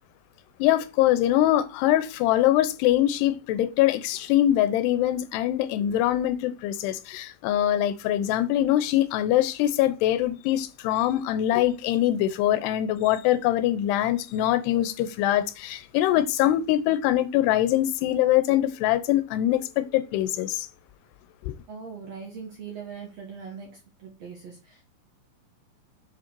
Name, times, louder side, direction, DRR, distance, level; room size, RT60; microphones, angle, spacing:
voice 1, 0.6-20.7 21.4-21.5, left 13 dB, 90° left, 2.8 m, -23 dB
voice 2, 21.7-24.8, right 6 dB, 65° right, 1.7 m, -41 dB
6.9 x 3.8 x 4.5 m
omnidirectional pair, 4.7 m